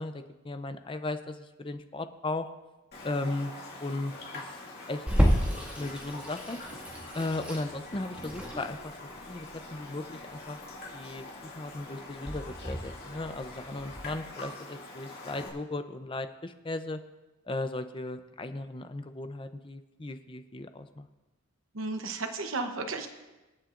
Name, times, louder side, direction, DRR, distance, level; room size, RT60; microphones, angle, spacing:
voice 1, 0.0-2.5 3.0-3.5 3.8-4.4 4.9-5.0 5.8-6.6 7.1-8.9 9.2-10.6 10.9-11.3 11.6-17.0 17.5-21.1, left 2 dB, 25° left, 9 dB, 0.5 m, -36 dB
Raindrop, 2.9-15.5, left 2 dB, 45° left, 2.3 m, -44 dB
Water tap faucet / Sink (filling or washing), 5.1-14.1, equal, 5° right, 1.8 m, -32 dB
voice 2, 21.7-23.1, right 3 dB, 65° right, 6 dB, 0.9 m, -33 dB
26.0 x 8.8 x 2.5 m, 1.1 s
head